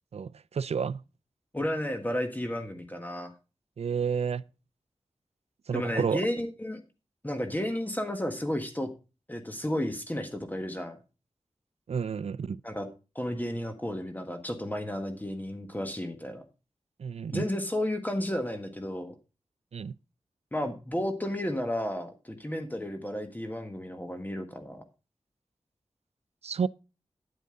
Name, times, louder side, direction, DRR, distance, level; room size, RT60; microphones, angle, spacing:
voice 1, 0.1-1.0 3.8-4.4 5.7-6.2 11.9-12.6 17.0-17.5 19.7-19.9 26.4-26.7, right 6 dB, 70° right, 0.4 m, -30 dB
voice 2, 1.5-3.3 5.7-6.8 7.2-8.9 9.3-11.0 12.6-12.9 13.1-16.4 17.3-19.1 20.5-24.8, left 1 dB, 15° left, 1.5 m, -32 dB
9.6 x 9.2 x 3.8 m
wide cardioid pair, 85°, 11 cm